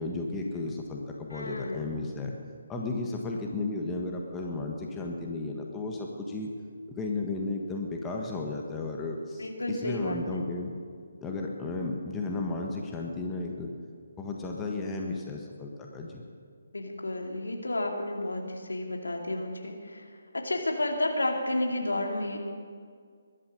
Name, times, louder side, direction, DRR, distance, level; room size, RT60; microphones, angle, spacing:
voice 1, 0.0-2.4 2.7-6.5 6.9-10.7 11.2-13.7 14.2-16.2, left 3 dB, 10° left, 0 dB, 1.5 m, -34 dB
voice 2, 1.3-1.9 9.4-10.4 16.7-20.0 20.3-22.4, left 1 dB, 75° left, 2 dB, 2.5 m, -31 dB
22.0 x 11.5 x 5.4 m, 2.1 s
figure-of-eight pair, 145°, 0 cm